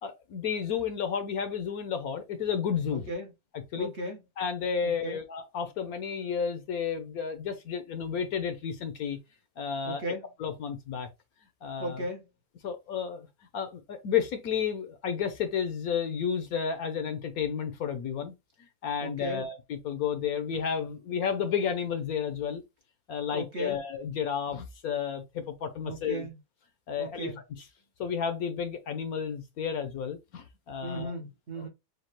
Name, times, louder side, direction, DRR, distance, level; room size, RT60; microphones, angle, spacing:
voice 1, 0.0-3.1 3.7-3.9 4.4-9.2 9.6-10.0 10.4-11.1 11.6-12.0 12.6-13.3 13.5-18.3 18.8-22.6 23.1-26.3 26.9-27.3 28.0-31.1, left 7 dB, 65° left, 1.1 m, -32 dB
voice 2, 2.9-3.3 3.8-4.2 4.8-5.2 9.9-10.3 11.8-12.3 19.0-19.5 23.3-23.8 25.8-26.4 27.0-27.4 30.8-31.7, right 1 dB, 50° right, 1.1 m, -36 dB
6.5 x 2.3 x 2.9 m
omnidirectional pair, 1.8 m